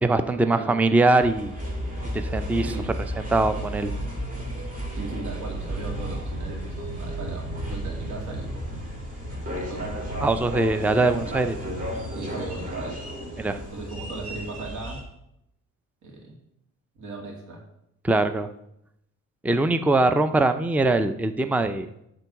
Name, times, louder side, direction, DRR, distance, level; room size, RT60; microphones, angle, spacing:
voice 1, 0.0-1.5 2.1-2.7 3.2-3.9 10.2-11.6 13.4-13.6 18.0-18.5 19.4-21.9, right 2 dB, 5° right, 10 dB, 0.5 m, -22 dB
sound 1, 1.2-15.0, equal, 30° right, 2.8 m, -33 dB
voice 2, 2.5-3.0 4.9-8.8 9.4-9.9 12.1-13.0 13.7-15.1 16.0-16.4 17.0-17.6, right 2 dB, 85° right, 0 dB, 2.5 m, -37 dB
9.8 x 3.9 x 6.9 m, 0.79 s
cardioid pair, 90°, 30 cm